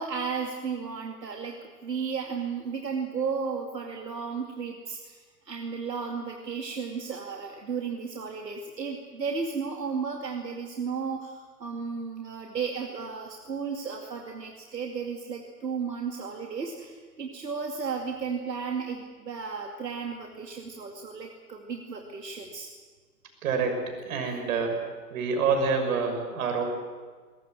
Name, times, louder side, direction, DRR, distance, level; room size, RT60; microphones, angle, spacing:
voice 1, 0.0-22.7 24.2-24.3, right 5 dB, 85° right, 2 dB, 2.5 m, -34 dB
voice 2, 23.4-23.8 24.0-24.8 25.1-26.6, right 5 dB, 55° right, 4 dB, 6.3 m, -27 dB
22.5 x 20.0 x 7.9 m, 1.5 s
hypercardioid pair, 115°, 48 cm